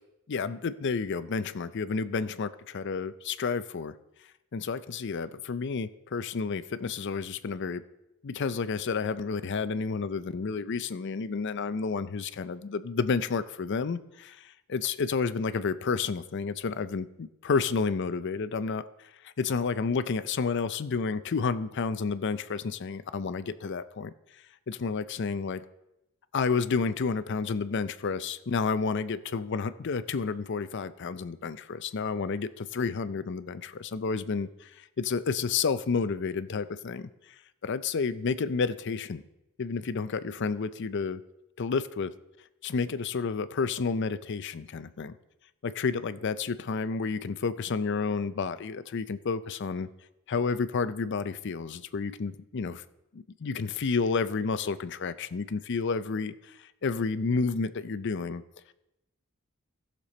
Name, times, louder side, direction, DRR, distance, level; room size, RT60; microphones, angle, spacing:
voice 1, 0.3-3.9 4.5-7.8 8.2-18.8 19.2-24.1 24.7-25.6 26.3-37.1 37.6-39.2 39.6-41.2 41.6-42.1 42.6-45.1 45.6-49.9 50.3-52.8 53.1-58.4, left 5 dB, 60° left, 13 dB, 0.5 m, -30 dB
15.0 x 6.7 x 4.2 m, 0.90 s
head